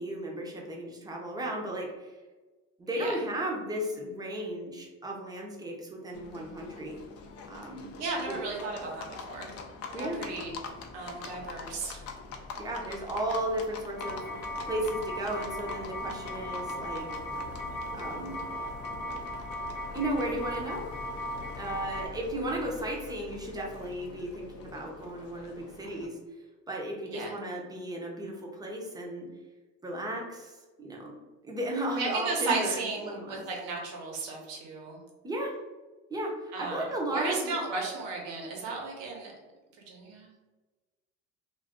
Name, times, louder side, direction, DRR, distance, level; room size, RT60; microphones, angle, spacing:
voice 1, 0.0-2.1 2.8-7.0 7.5-7.9 8.3-8.4 9.9-10.2 12.6-14.2 14.7-17.1 17.9-18.4 19.9-20.9 21.6-26.2 26.7-29.3 29.8-31.2 31.4-33.4 35.2-35.5 36.1-37.6, right 1 dB, 10° right, -1 dB, 0.7 m, -35 dB
Livestock farm animals working animals, 6.1-26.1, left 4 dB, 45° left, 0.5 m, -45 dB
voice 2, 8.0-9.6 9.9-10.6 10.9-12.0 27.1-27.3 31.9-35.0 36.5-39.3 39.9-40.3, right 3 dB, 85° right, 0 dB, 1.0 m, -34 dB
sound 1, 14.0-22.1, left 1 dB, 70° left, 0.9 m, -37 dB
2.5 x 2.4 x 3.5 m, 1.2 s
supercardioid pair, 105°, 34 cm